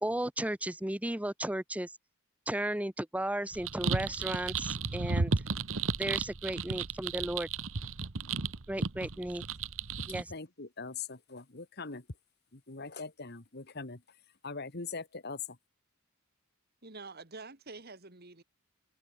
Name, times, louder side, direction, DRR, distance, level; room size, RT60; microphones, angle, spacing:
voice 1, 0.0-1.9 2.5-5.3 6.0-7.5 8.7-9.4 10.1-10.2, right 1 dB, 5° right, 0.8 m, -34 dB
sound 1, 3.5-10.2, right 4 dB, 70° right, 1.2 m, -34 dB
voice 2, 10.3-12.1 12.5-14.0 14.4-15.6, left 4 dB, 50° left, 1.9 m, -41 dB
voice 3, 16.8-18.4, right 3 dB, 50° right, 2.6 m, -47 dB
head